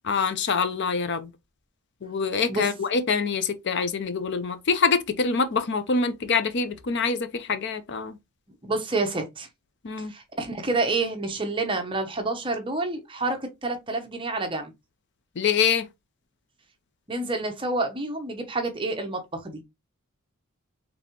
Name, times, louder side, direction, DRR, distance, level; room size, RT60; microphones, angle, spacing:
voice 1, 0.1-1.3 2.0-8.2 9.8-10.1 15.4-15.8, left 5 dB, 50° left, 0.5 m, -25 dB
voice 2, 8.7-9.5 10.1-14.7 17.1-19.6, right 3 dB, 25° right, 0.8 m, -28 dB
4.1 x 3.3 x 3.0 m
head